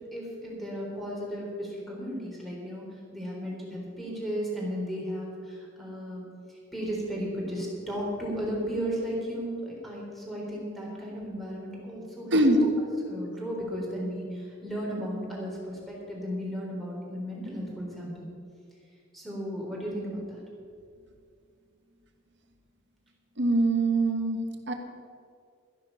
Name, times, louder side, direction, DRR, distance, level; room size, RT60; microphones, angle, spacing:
voice 1, 0.1-2.9 3.1-12.6 13.0-18.3 19.1-20.4, equal, ahead, -4 dB, 3.8 m, -35 dB
voice 2, 23.4-24.4 24.7-24.8, right 2 dB, 65° right, 4 dB, 1.5 m, -23 dB
13.5 x 10.5 x 5.7 m, 2.3 s
head